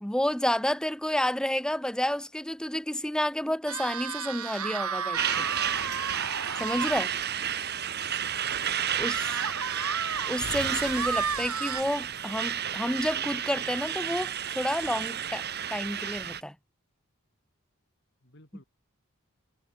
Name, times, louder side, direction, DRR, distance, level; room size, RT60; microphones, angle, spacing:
voice 1, 0.0-5.5 6.6-7.1 9.0-9.5 10.3-15.4 15.7-16.5, left 1 dB, 5° left, 1.0 m, -30 dB
sound 1, 3.7-7.1 7.5-7.6 8.0-8.1 9.0-11.8, right 6 dB, 85° right, 3.2 m, -33 dB
Truck, 5.2-16.4, right 9 dB, 50° right, 2.1 m, -32 dB
voice 2, 6.8-7.4 8.6-9.1 18.2-18.6, left 1 dB, 55° left, 6.4 m, -57 dB
sound 2, 10.4-13.2, left 2 dB, 90° left, 6.4 m, -44 dB
head